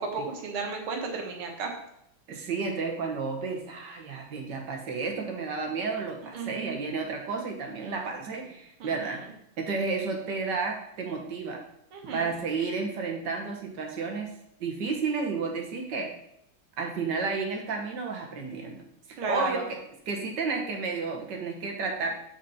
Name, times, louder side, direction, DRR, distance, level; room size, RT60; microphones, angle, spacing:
voice 1, 0.0-1.7 6.3-6.8 8.8-9.0 11.9-12.3 19.2-19.7, right 4 dB, 75° right, 1 dB, 2.2 m, -33 dB
voice 2, 2.3-9.2 9.6-11.6 12.1-14.3 14.6-16.1 16.8-18.8 19.3-19.8 20.1-22.1, right 4 dB, 55° right, 1 dB, 1.7 m, -31 dB
7.0 x 6.0 x 4.2 m, 0.76 s
omnidirectional pair, 2.4 m